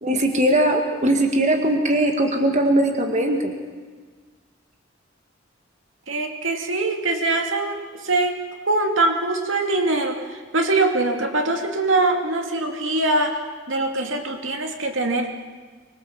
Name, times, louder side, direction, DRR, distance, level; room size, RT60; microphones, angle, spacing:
voice 1, 0.0-3.5, right 1 dB, 35° right, 3 dB, 1.9 m, -20 dB
voice 2, 6.1-8.4 8.7-13.4 13.7-15.3, right 2 dB, 70° right, 4 dB, 2.5 m, -23 dB
24.5 x 21.5 x 7.3 m, 1.5 s
head